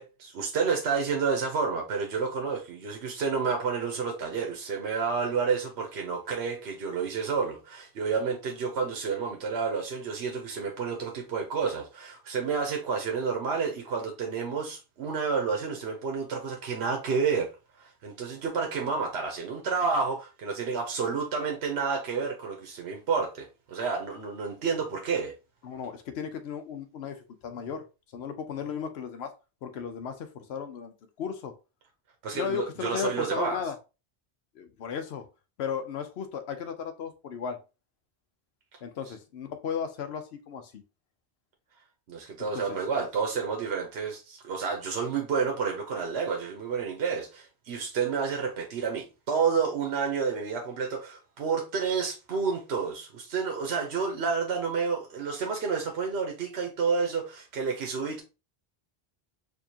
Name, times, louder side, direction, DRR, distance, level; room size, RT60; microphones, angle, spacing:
voice 1, 0.0-17.5 17.8-25.3 32.2-33.6 42.1-58.2, right 5 dB, 90° right, 1.0 m, -30 dB
voice 2, 25.6-27.8 28.1-29.3 29.6-31.5 32.3-33.8 34.6-35.3 35.6-37.6 38.8-40.8 42.5-42.8, left 7 dB, 85° left, 0.9 m, -35 dB
4.6 x 2.8 x 2.7 m
omnidirectional pair, 1.0 m